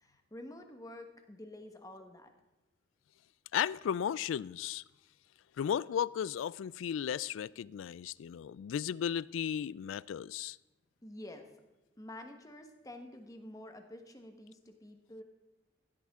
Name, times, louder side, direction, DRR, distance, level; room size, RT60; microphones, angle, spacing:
voice 1, 0.0-2.3 11.0-11.5 12.0-15.2, left 1 dB, 20° left, 1.2 m, -49 dB
voice 2, 3.5-4.8 5.6-10.6, left 8 dB, 85° left, 0.3 m, -35 dB
16.0 x 12.5 x 3.6 m
head